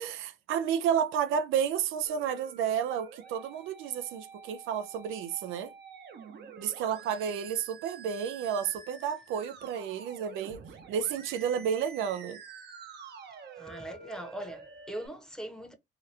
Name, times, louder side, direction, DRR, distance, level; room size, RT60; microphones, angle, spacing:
voice 1, 0.0-5.7 6.6-10.6 10.9-12.4, right 8 dB, 90° right, 0.4 m, -31 dB
Musical instrument, 2.1-15.1, right 6 dB, 60° right, 0.8 m, -49 dB
voice 2, 13.6-15.7, right 1 dB, 5° left, 0.8 m, -40 dB
2.9 x 2.3 x 3.3 m
cardioid pair, 90°, 20 cm